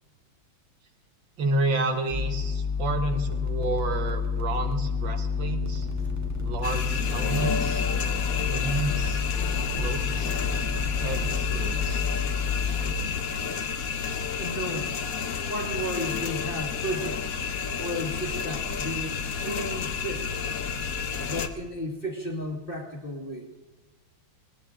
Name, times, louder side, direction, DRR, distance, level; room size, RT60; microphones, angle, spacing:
voice 1, 1.4-5.9 6.4-7.8 8.5-9.2 9.7-10.4 11.0-12.1, right 2 dB, 70° right, 6 dB, 2.1 m, -30 dB
sound 1, 2.1-12.9, left 5 dB, 10° right, 1.5 m, -29 dB
sound 2, 6.6-21.5, left 6 dB, 55° left, 1.1 m, -31 dB
sound 3, 7.9-13.6, left 6 dB, 80° left, 1.8 m, -40 dB
voice 2, 14.3-14.9 15.5-17.2 17.8-20.3 21.3-23.5, equal, 25° left, 2 dB, 2.1 m, -33 dB
20.0 x 19.0 x 3.8 m, 1.2 s
omnidirectional pair, 2.2 m